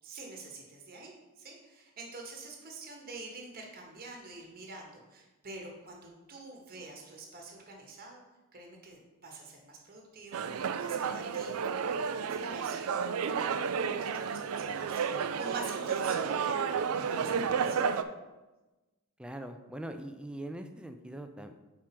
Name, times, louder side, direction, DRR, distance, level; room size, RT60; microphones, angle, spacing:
voice 1, 0.0-8.2 8.5-18.0, right 2 dB, 45° right, 0 dB, 1.2 m, -47 dB
sound 1, 10.3-18.0, right 6 dB, 75° right, 0.4 m, -31 dB
voice 2, 19.2-21.6, right 1 dB, 5° right, 7 dB, 0.4 m, -42 dB
4.8 x 4.4 x 5.9 m, 1.1 s
head